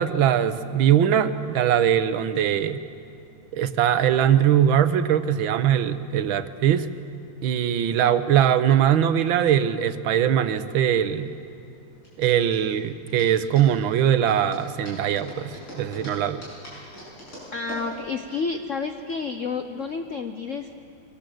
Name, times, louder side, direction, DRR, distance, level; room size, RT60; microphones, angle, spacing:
voice 1, 0.0-2.8 3.5-6.9 7.4-11.3 12.2-16.4, right 9 dB, 75° right, 12 dB, 1.6 m, -21 dB
sound 1, 10.4-19.1, equal, 85° left, 7.6 m, -44 dB
voice 2, 17.5-20.7, left 4 dB, 65° left, 7 dB, 0.7 m, -30 dB
23.5 x 18.5 x 7.8 m, 2.7 s
omnidirectional pair, 2.3 m